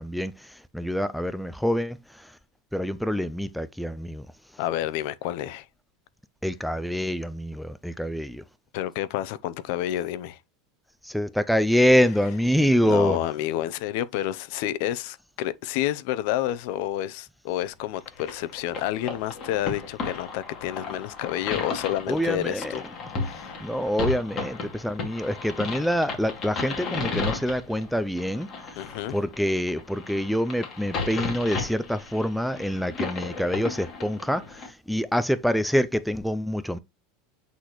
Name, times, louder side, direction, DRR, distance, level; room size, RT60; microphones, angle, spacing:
voice 1, 0.0-2.3 2.7-4.3 6.4-8.4 11.0-13.2 22.1-22.7 23.6-28.8 29.1-36.8, equal, ahead, 0.3 m, -26 dB
voice 2, 4.6-5.7 8.7-10.4 12.8-22.8 23.1-23.6 28.7-29.2, left 13 dB, 55° left, 0.6 m, -29 dB
sound 1, 17.9-34.7, left 4 dB, 30° left, 2.4 m, -34 dB
8.3 x 4.0 x 3.0 m
supercardioid pair, 160°, 0 cm